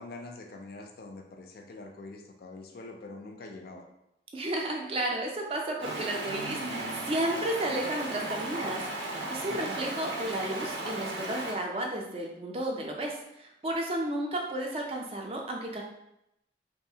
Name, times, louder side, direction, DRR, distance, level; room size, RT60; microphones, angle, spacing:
voice 1, 0.0-3.8 9.5-9.8, left 2 dB, 55° left, 3 dB, 0.3 m, -44 dB
voice 2, 4.3-15.8, right 1 dB, 30° right, 0 dB, 0.4 m, -33 dB
Stream, 5.8-11.5, right 2 dB, 80° right, 0.5 m, -35 dB
2.7 x 2.3 x 2.7 m, 0.84 s
head